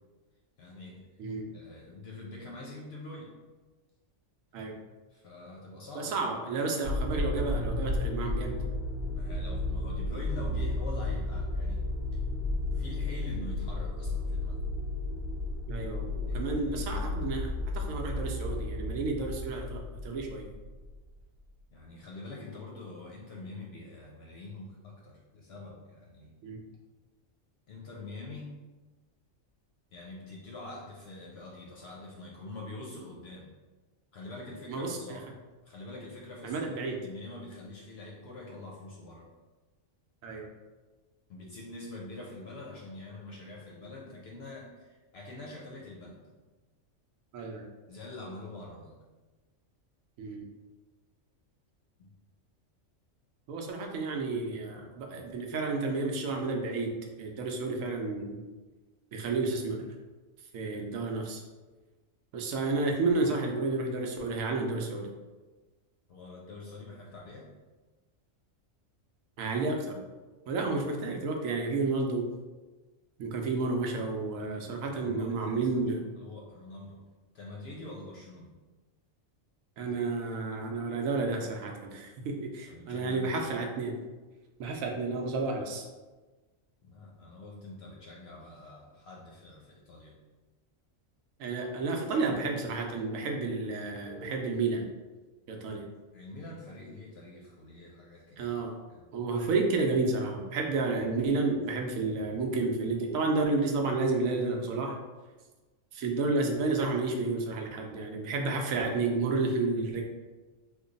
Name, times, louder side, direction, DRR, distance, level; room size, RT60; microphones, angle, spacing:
voice 1, 0.6-1.1 1.5-3.4 5.1-6.2 9.1-11.8 12.7-14.6 16.3-16.9 21.7-26.3 27.7-28.5 29.9-33.5 34.1-35.2 35.6-39.3 41.3-46.2 47.9-49.0 52.0-52.1 66.1-67.5 74.8-75.9 76.2-77.0 77.3-78.6 82.7-83.4 86.8-90.2 96.1-98.6 98.9-99.1, left 2 dB, 65° left, -3 dB, 0.7 m, -45 dB
voice 2, 5.9-8.6 15.7-20.5 26.4-26.6 34.7-35.2 36.4-37.0 40.2-40.5 47.3-47.7 50.2-50.5 53.5-56.9 57.2-58.4 59.1-59.9 60.5-61.4 62.3-65.1 69.4-70.0 70.5-72.2 73.2-76.0 79.8-83.9 84.6-85.9 91.4-94.8 95.5-95.8 98.4-98.7 99.1-105.0 105.9-110.0, right 3 dB, 80° right, 2 dB, 1.0 m, -31 dB
sound 1, 6.8-21.1, left 2 dB, 50° right, 0.8 m, -33 dB
3.1 x 2.2 x 3.8 m, 1.3 s
omnidirectional pair, 1.4 m